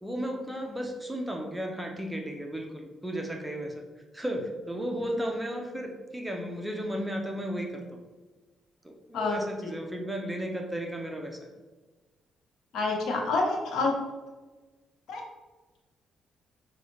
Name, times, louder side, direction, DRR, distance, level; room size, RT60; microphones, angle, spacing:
voice 1, 0.0-3.8 4.1-7.8 8.8-11.5, equal, 10° right, 2 dB, 0.6 m, -34 dB
voice 2, 12.7-13.9 15.1-15.2, left 3 dB, 75° left, -1 dB, 1.0 m, -27 dB
5.2 x 2.3 x 3.2 m, 1.2 s
cardioid pair, 90°, 0 cm